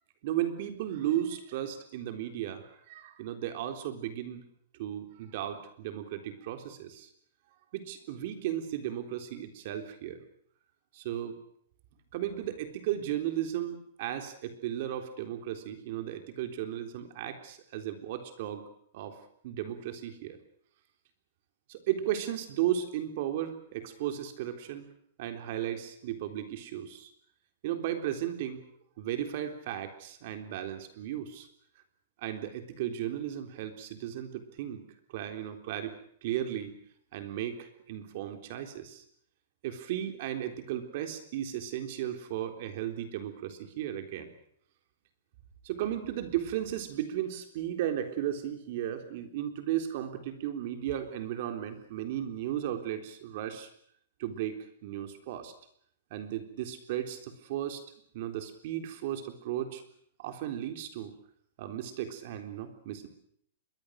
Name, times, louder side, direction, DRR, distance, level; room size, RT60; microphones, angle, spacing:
voice 1, 0.2-4.4 4.7-7.1 7.7-10.2 10.9-11.4 12.1-18.6 18.9-19.2 19.4-20.4 21.7-24.9 25.2-27.1 27.6-28.6 29.0-31.5 32.2-34.8 35.1-35.9 36.2-36.7 37.1-39.0 39.6-44.3 45.6-53.7 54.2-55.5 56.1-57.8 58.1-59.8 60.2-61.1 61.6-63.1, right 11 dB, 45° right, 7 dB, 3.7 m, -35 dB
26.5 x 22.5 x 6.5 m, 0.65 s
supercardioid pair, 170°, 0 cm